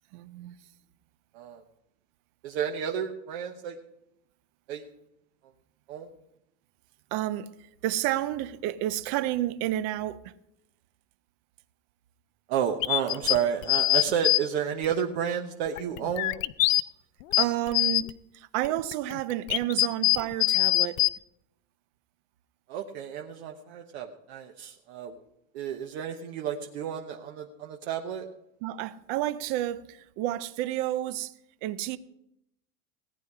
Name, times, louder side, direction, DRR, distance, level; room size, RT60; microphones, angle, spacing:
voice 1, 0.1-0.5 7.1-7.5 7.8-10.2 17.4-21.0 28.6-31.3 31.6-32.0, right 13 dB, 30° right, 0.4 m, -30 dB
voice 2, 2.4-3.8 4.7-4.9 5.9-6.1 12.5-16.4 22.7-25.2 25.5-28.3, right 8 dB, 55° right, 1.1 m, -31 dB
sound 1, 12.8-14.4 14.8-14.9 15.7-16.8 17.2-18.1 18.6-21.1, left 19 dB, 85° left, 0.6 m, -24 dB
17.5 x 9.8 x 4.8 m
supercardioid pair, 165°, 38 cm